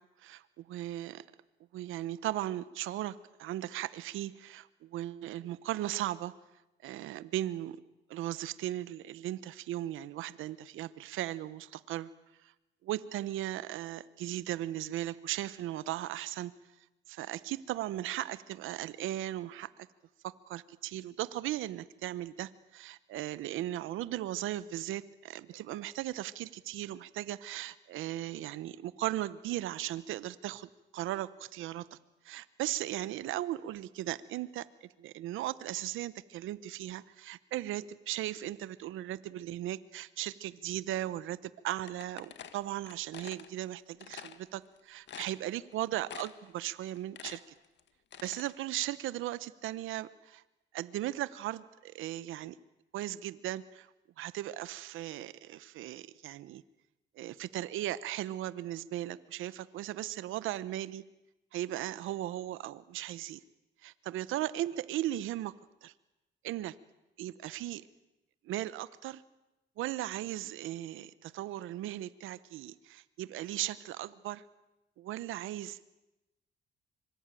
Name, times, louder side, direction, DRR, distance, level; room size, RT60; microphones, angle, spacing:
voice 1, 0.2-1.2 1.7-6.3 6.8-7.8 8.1-12.1 12.4-12.5 12.8-16.5 17.1-19.7 20.2-32.0 32.2-47.4 48.2-50.4 50.7-52.6 52.9-53.9 54.2-56.6 57.2-61.0 61.5-63.4 63.8-65.5 65.8-65.9 66.4-66.8 67.2-67.8 68.4-69.2 69.8-74.4 75.0-75.8, right 14 dB, 85° right, 16 dB, 0.9 m, -37 dB
sound 1, 41.9-43.5 44.0-44.4 44.8-44.9 45.1-45.7 46.1-46.5 46.8-48.5, left 9 dB, 65° left, 1.9 m, -47 dB
25.5 x 24.0 x 9.1 m, 0.98 s
cardioid pair, 90°, 20 cm